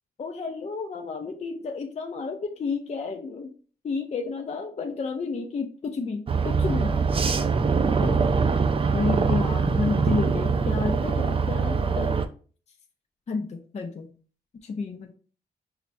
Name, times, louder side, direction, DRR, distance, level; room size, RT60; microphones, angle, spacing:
voice 1, 0.2-3.5 3.8-7.0 8.0-8.2 8.9-12.1 13.3-14.1 14.6-15.1, left 4 dB, 40° left, 3 dB, 0.5 m, -31 dB
sound 1, 6.3-12.3, right 4 dB, 35° right, 0.4 m, -23 dB
5.6 x 2.0 x 2.5 m, 0.40 s
cardioid pair, 75°, 17 cm